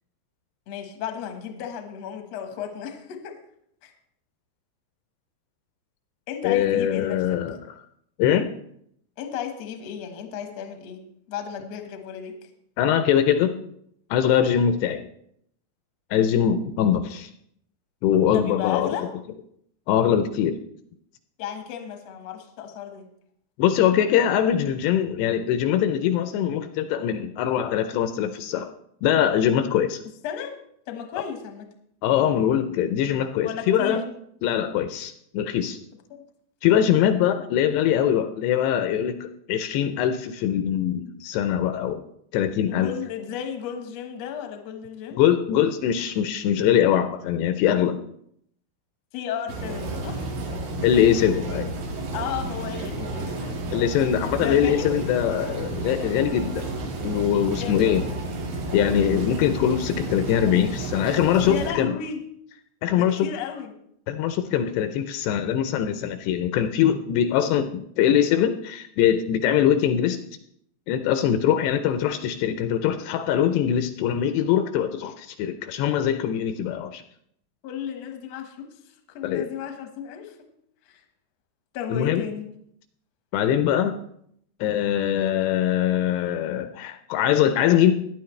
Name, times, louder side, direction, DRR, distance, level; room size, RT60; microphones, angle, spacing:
voice 1, 0.7-3.4 3.8-3.9 6.3-7.4 9.2-11.0 11.3-12.5 18.3-19.1 21.4-23.1 30.2-30.5 30.9-31.7 33.4-34.0 36.1-36.2 36.9-37.0 42.7-45.2 49.1-50.3 52.1-53.5 54.4-54.9 57.6-58.2 58.7-58.8 61.4-62.2 62.9-63.7 77.6-78.7 79.1-80.5 80.9-81.0 81.7-82.4, left 8 dB, 65° left, 5 dB, 1.7 m, -34 dB
voice 2, 6.4-7.6 8.2-8.5 12.8-13.6 14.1-15.1 16.1-17.3 18.0-19.0 19.9-20.6 23.6-28.7 29.0-30.0 32.0-34.1 34.4-35.8 36.6-42.0 42.3-42.9 45.2-48.0 50.8-51.7 53.7-56.7 57.0-58.0 58.7-62.0 62.8-63.3 64.1-70.2 70.9-77.0 79.2-79.5 81.9-82.2 83.3-84.0 84.6-87.9, left 9 dB, 80° left, 9 dB, 2.6 m, -22 dB
sound 1, 49.5-61.7, right 2 dB, 90° right, 4.3 m, -31 dB
17.0 x 10.5 x 3.2 m, 0.70 s
omnidirectional pair, 5.1 m